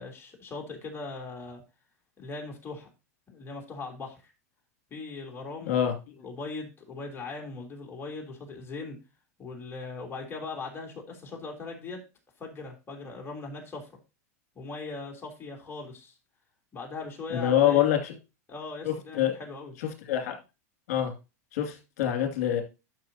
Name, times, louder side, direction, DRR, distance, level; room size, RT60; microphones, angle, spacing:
voice 1, 0.0-1.6 2.2-2.9 3.3-4.3 4.9-5.8 6.2-9.0 9.4-12.0 12.4-13.9 14.5-16.1 16.7-17.8 18.5-19.7, left 3 dB, 25° left, 1 dB, 3.3 m, -39 dB
voice 2, 17.3-18.1 18.8-19.4 19.8-20.3 20.9-21.1 21.5-22.6, left 10 dB, 65° left, 4 dB, 2.5 m, -25 dB
12.5 x 5.7 x 2.8 m, 0.29 s
hypercardioid pair, 105°, 9 cm